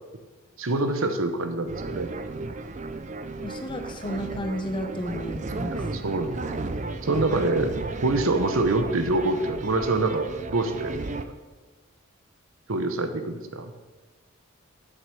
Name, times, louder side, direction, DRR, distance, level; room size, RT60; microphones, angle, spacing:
voice 1, 0.6-2.1 5.7-6.5 7.0-7.7 8.0-11.0 12.7-13.7, right 2 dB, 75° right, 8 dB, 0.9 m, -25 dB
sound 1, 1.7-11.3, right 3 dB, 35° right, 0.5 m, -34 dB
voice 2, 3.4-5.9, equal, 25° left, 6 dB, 0.7 m, -33 dB
7.8 x 6.3 x 7.0 m, 1.3 s
head